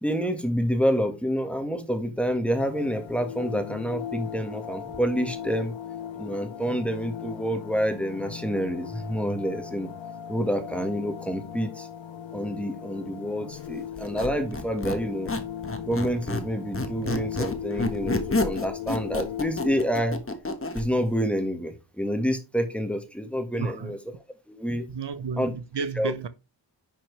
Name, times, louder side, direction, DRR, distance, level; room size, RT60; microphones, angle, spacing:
voice 1, 0.0-5.7 6.2-9.9 10.3-11.9 12.3-15.3 15.8-20.2 20.7-24.0 24.5-24.8 25.4-25.5 26.0-26.1, equal, 5° left, 1.7 m, -28 dB
sound 1, 2.5-19.9, left 9 dB, 85° left, 0.7 m, -38 dB
Squeak, 14.0-16.5 16.7-20.9, left 2 dB, 30° left, 1.5 m, -29 dB
voice 2, 23.5-24.0 24.9-26.3, right 5 dB, 65° right, 0.8 m, -32 dB
10.0 x 5.9 x 3.3 m
wide cardioid pair, 95°, 45 cm